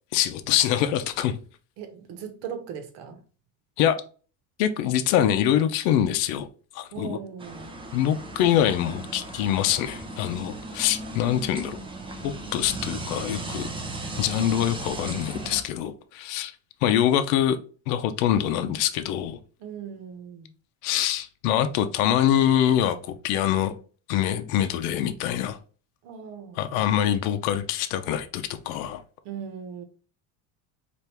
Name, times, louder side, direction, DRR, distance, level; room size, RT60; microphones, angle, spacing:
voice 1, 0.1-1.4 3.8-4.0 4.6-6.5 6.7-7.2 7.9-11.8 12.2-13.7 14.2-16.5 16.8-17.6 17.9-19.4 20.8-23.7 24.1-25.6 26.6-29.0, left 10 dB, 90° left, 0.6 m, -24 dB
voice 2, 1.8-3.2 6.9-7.7 19.6-20.5 26.0-26.8 29.2-29.8, right 7 dB, 70° right, 1.0 m, -38 dB
sound 1, 7.4-15.6, right 2 dB, 15° right, 0.4 m, -36 dB
4.3 x 2.5 x 3.3 m
cardioid pair, 145°, 43 cm